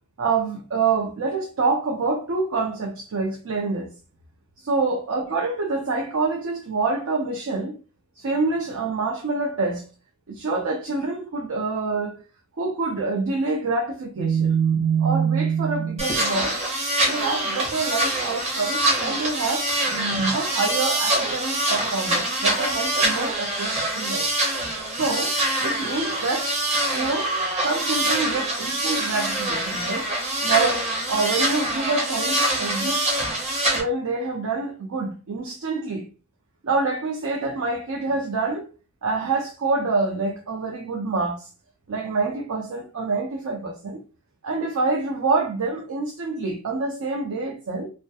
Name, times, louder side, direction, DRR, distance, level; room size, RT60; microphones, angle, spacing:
voice 1, 0.2-3.9 4.6-7.8 8.2-9.9 10.3-12.1 12.6-16.6 17.0-24.3 24.9-25.3 25.6-26.5 26.9-30.1 30.4-33.0 33.7-36.0 36.6-38.7 39.0-41.5 41.9-44.0 44.4-47.9, right 4 dB, 75° right, 0.5 m, -26 dB
sound 1, 16.0-33.8, right 1 dB, 30° right, 0.7 m, -25 dB
2.2 x 2.1 x 2.7 m
head